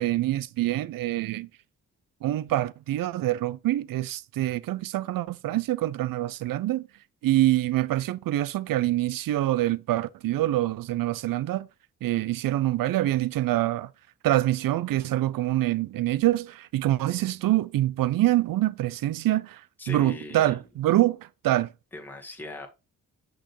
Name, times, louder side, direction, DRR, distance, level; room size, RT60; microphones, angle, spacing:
voice 1, 0.0-1.5 2.2-6.8 7.2-11.7 12.0-13.9 14.2-19.6 19.9-21.7, right 15 dB, 60° right, 0.6 m, -25 dB
voice 2, 19.8-20.6 21.9-22.7, left 2 dB, 5° left, 1.8 m, -39 dB
6.2 x 6.2 x 3.1 m
hypercardioid pair, 40°, 39 cm